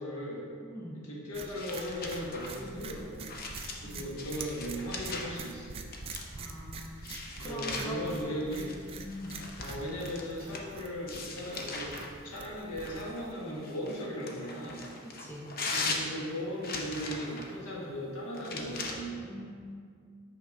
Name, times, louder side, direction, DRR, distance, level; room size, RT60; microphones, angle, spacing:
voice 1, 0.0-0.4 1.0-3.3 3.8-5.9 7.4-8.7 9.6-11.9 12.2-14.8 15.7-19.2, equal, 85° left, -4 dB, 1.5 m, -37 dB
voice 2, 0.6-1.1 2.6-2.9 3.8-4.1 6.4-7.1 7.4-9.4 15.0-15.5 19.2-19.5, left 1 dB, 10° left, -3 dB, 0.7 m, -43 dB
sound 1, 1.3-13.3, right 4 dB, 25° right, 0.4 m, -45 dB
sound 2, 1.4-5.5 5.9-6.5 7.0-10.7 11.1-12.1 12.8-17.5 18.3-18.9, left 3 dB, 45° left, 0.7 m, -40 dB
5.8 x 3.7 x 5.3 m, 2.1 s
head